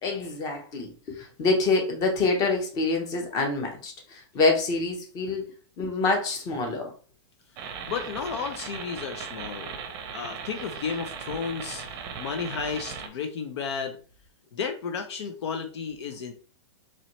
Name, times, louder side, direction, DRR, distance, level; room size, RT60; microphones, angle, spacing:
voice 1, 0.0-5.5 5.8-6.9, left 3 dB, 25° left, 2 dB, 1.0 m, -26 dB
sound 1, 7.6-13.1, right 6 dB, 30° right, 0.7 m, -38 dB
voice 2, 7.9-9.7 10.1-11.8 12.2-14.0 14.5-16.3, left 6 dB, 65° left, 6 dB, 0.7 m, -33 dB
4.1 x 3.0 x 3.1 m, 0.39 s
hypercardioid pair, 150°, 16 cm